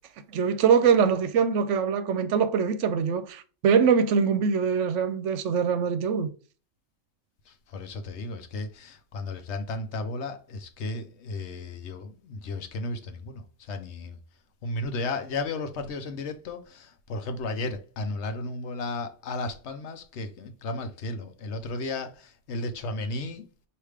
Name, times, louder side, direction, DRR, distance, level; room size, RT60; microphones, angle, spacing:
voice 1, 0.3-6.3, right 6 dB, 75° right, 0.9 m, -23 dB
voice 2, 7.5-14.2 14.6-23.4, left 2 dB, 70° left, 0.9 m, -34 dB
4.9 x 2.8 x 3.2 m
omnidirectional pair, 1.3 m